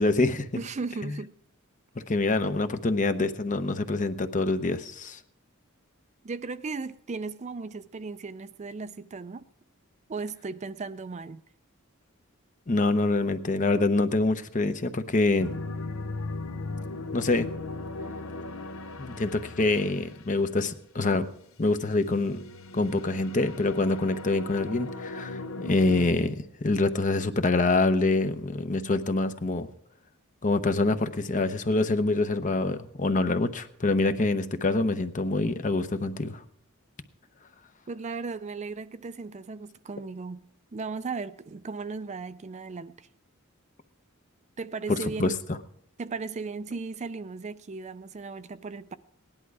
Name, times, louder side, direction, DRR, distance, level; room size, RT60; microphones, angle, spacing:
voice 1, 0.0-0.5 1.0-1.1 2.1-5.2 12.7-15.5 17.1-17.5 19.0-21.2 21.6-22.4 22.7-29.7 30.4-36.4 44.9-45.3, left 2 dB, 40° left, 0.8 m, -25 dB
voice 2, 0.6-1.3 6.2-9.4 10.1-11.4 37.9-40.4 40.7-43.1 44.6-45.4 46.0-49.0, right 4 dB, 35° right, 0.4 m, -36 dB
sound 1, 15.4-20.7 21.7-26.1, left 2 dB, 80° left, 0.8 m, -38 dB
17.5 x 11.0 x 4.7 m
head